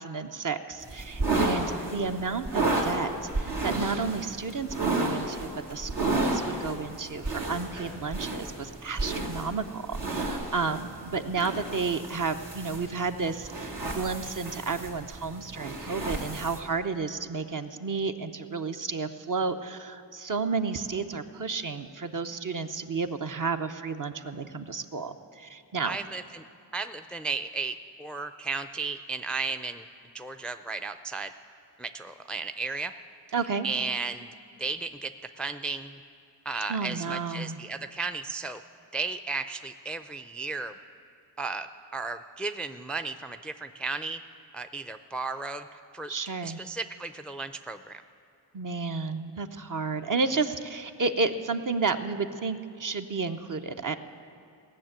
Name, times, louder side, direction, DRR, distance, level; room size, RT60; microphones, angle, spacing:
voice 1, 0.0-3.1 3.4-26.0 33.3-33.7 36.7-37.6 46.1-46.6 48.5-54.0, right 4 dB, 45° right, 7 dB, 0.8 m, -31 dB
sound 1, 0.8-16.6, right 2 dB, 80° right, 2.4 m, -32 dB
voice 2, 25.8-26.4 26.7-29.9 30.1-31.3 31.8-32.9 33.6-34.3 34.6-35.1 35.4-36.0 36.5-38.6 38.9-40.7 41.4-44.2 44.5-46.1 46.4-48.0, right 4 dB, 5° left, 8 dB, 0.4 m, -34 dB
17.0 x 6.6 x 8.9 m, 2.6 s
cardioid pair, 60°, 43 cm